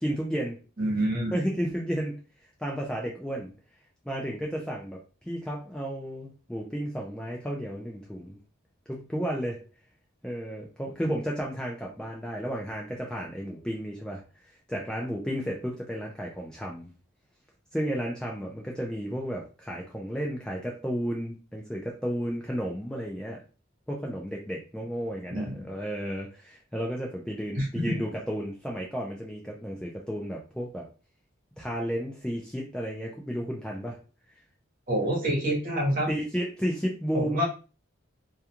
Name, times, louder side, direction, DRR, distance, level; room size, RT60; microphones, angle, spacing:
voice 1, 0.0-0.6 1.3-2.2 2.6-3.5 4.0-8.4 8.9-9.6 10.2-14.2 14.7-16.9 17.7-23.4 23.9-30.9 31.6-34.0 36.1-37.4, equal, 5° left, -2 dB, 0.3 m, -32 dB
voice 2, 0.8-1.3 25.3-25.7 27.5-27.9 34.9-36.1 37.1-37.4, equal, 40° right, -3 dB, 1.0 m, -27 dB
2.4 x 2.3 x 2.8 m, 0.34 s
head